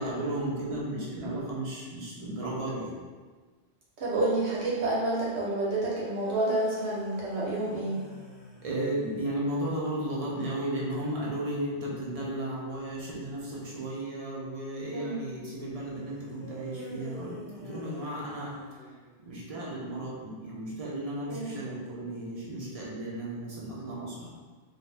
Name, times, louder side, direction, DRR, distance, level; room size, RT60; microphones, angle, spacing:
voice 1, 0.0-3.0 8.6-18.8 19.2-24.3, right 1 dB, 40° right, -5 dB, 0.6 m, -34 dB
voice 2, 4.0-8.0 14.9-15.2 21.3-21.6, right 2 dB, 90° right, -7 dB, 1.1 m, -29 dB
sound 1, 6.0-9.2 16.4-19.3, right 1 dB, 60° left, 0.8 m, -45 dB
2.6 x 2.1 x 3.2 m, 1.4 s
omnidirectional pair, 1.1 m